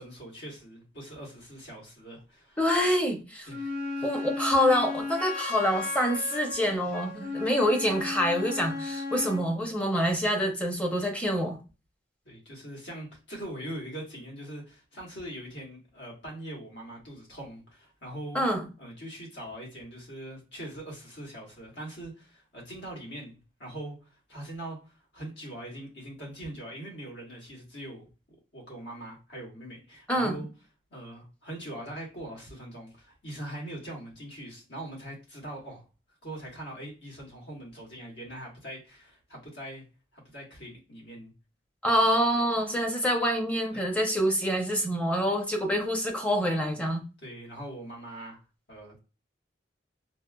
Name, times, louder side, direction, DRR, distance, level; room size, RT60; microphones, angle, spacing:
voice 1, 0.0-2.6 3.5-4.2 12.2-18.4 18.8-28.1 28.5-30.5 30.9-35.8 36.2-39.8 40.1-41.3 43.7-43.9 47.2-48.4 48.7-49.0, right 1 dB, 70° left, 1.5 m, -42 dB
voice 2, 2.6-3.5 4.0-11.6 18.3-18.7 30.1-30.4 41.8-47.0, equal, 10° left, 0.6 m, -26 dB
Wind instrument woodwind instrument, 3.5-9.5, left 3 dB, 50° left, 1.1 m, -35 dB
4.2 x 2.0 x 2.3 m
head